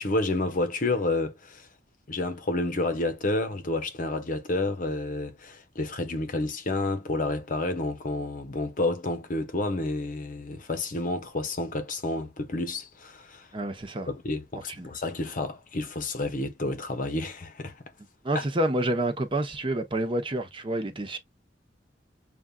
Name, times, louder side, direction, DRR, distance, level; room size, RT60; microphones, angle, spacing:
voice 1, 0.0-1.7 2.1-13.5 14.1-17.7, left 2 dB, 50° left, 0.8 m, -30 dB
voice 2, 13.5-14.1 14.7-14.9 18.2-21.2, right 1 dB, 30° right, 0.8 m, -28 dB
6.8 x 2.4 x 2.2 m
head